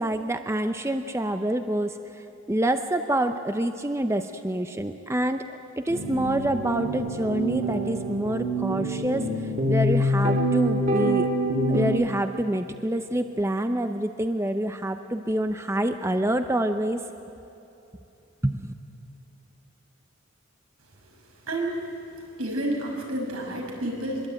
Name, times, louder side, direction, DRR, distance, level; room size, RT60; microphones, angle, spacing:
voice 1, 0.0-5.5 5.8-9.3 9.7-11.3 11.7-17.0 18.4-18.7, right 1 dB, 10° right, 7 dB, 0.7 m, -27 dB
sound 1, 5.9-11.9, equal, 35° right, 2.8 m, -26 dB
voice 2, 21.5-21.8 22.4-24.3, right 1 dB, 80° right, 0 dB, 5.9 m, -29 dB
24.5 x 22.0 x 9.1 m, 3.0 s
head